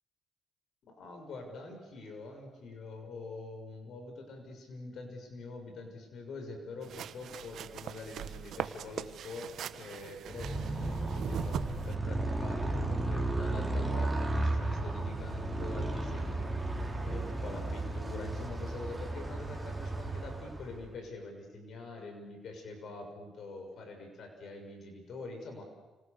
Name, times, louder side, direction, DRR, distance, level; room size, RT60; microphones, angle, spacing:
voice 1, 0.9-16.5 17.0-25.7, left 3 dB, 65° left, 4 dB, 6.7 m, -45 dB
sound 1, 6.8-12.0, right 9 dB, 70° right, 1.2 m, -41 dB
Motorcycle, 10.2-20.9, right 2 dB, 10° right, 5.7 m, -34 dB
29.5 x 27.0 x 7.0 m, 1.2 s
cardioid pair, 90°, 0 cm